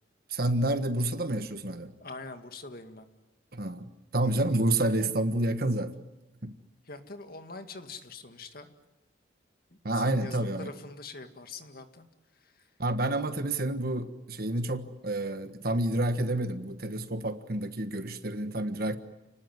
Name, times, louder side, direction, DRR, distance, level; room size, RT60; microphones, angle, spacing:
voice 1, 0.3-1.9 3.5-5.9 6.4-6.5 9.8-10.7 12.8-19.0, right 1 dB, 50° right, 1.5 m, -29 dB
voice 2, 2.0-3.1 6.9-8.7 9.7-12.1 12.4-12.6, left 3 dB, 50° left, 2.1 m, -44 dB
30.0 x 19.5 x 9.6 m
head